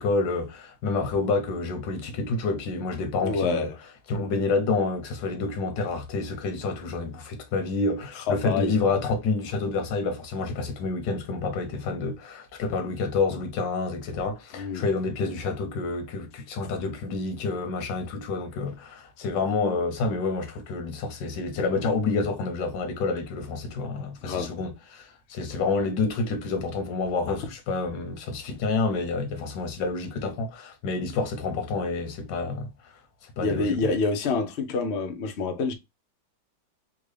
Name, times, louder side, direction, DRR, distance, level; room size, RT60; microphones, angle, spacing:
voice 1, 0.0-3.7 4.1-32.7 33.4-33.9, left 3 dB, 90° left, 1.5 m, -28 dB
voice 2, 3.2-3.7 8.2-8.8 14.5-14.8 24.2-24.5 33.4-35.7, left 4 dB, 65° left, 0.6 m, -27 dB
3.6 x 2.3 x 3.2 m
omnidirectional pair, 1.9 m